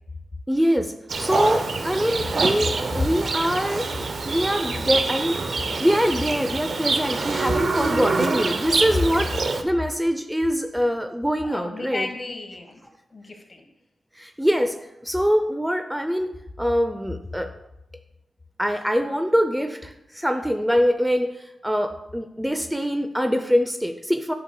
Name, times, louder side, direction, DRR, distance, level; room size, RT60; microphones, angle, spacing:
voice 1, 0.5-0.9 1.2-3.8 4.2-5.4 5.8-9.3 9.6-12.1 14.2-14.7 15.0-16.3 16.6-17.5 18.6-21.3 21.6-24.3, equal, 5° right, 7 dB, 0.5 m, -23 dB
Livestock farm animals working animals, 1.1-9.6, right 3 dB, 65° right, 0.6 m, -26 dB
voice 2, 7.8-8.2 11.4-12.8 13.1-13.6, left 3 dB, 45° left, 3 dB, 1.2 m, -32 dB
8.8 x 6.4 x 2.2 m, 0.87 s
cardioid pair, 45°, 0 cm